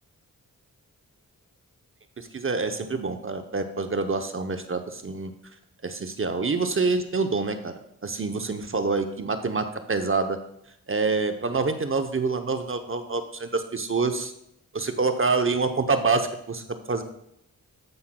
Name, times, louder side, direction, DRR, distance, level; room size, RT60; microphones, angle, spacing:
voice 1, 2.2-5.3 5.8-7.7 8.0-10.4 10.9-14.3 14.7-17.0, right 4 dB, 35° right, 7 dB, 0.8 m, -26 dB
13.5 x 5.6 x 2.2 m, 0.76 s
cardioid pair, 50°, 35 cm